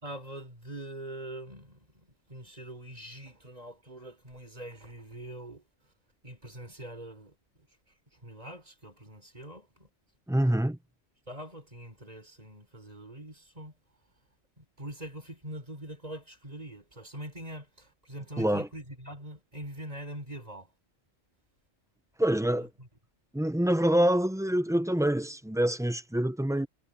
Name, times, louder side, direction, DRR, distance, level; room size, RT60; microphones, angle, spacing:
voice 1, 0.0-5.6 6.2-7.4 8.1-9.9 11.3-13.7 14.6-20.7 22.4-22.9, right 1 dB, 30° right, 4.6 m, -43 dB
voice 2, 10.3-10.8 18.4-18.7 22.2-22.7 23.3-26.7, right 1 dB, 5° right, 0.5 m, -26 dB
omnidirectional pair, 1.3 m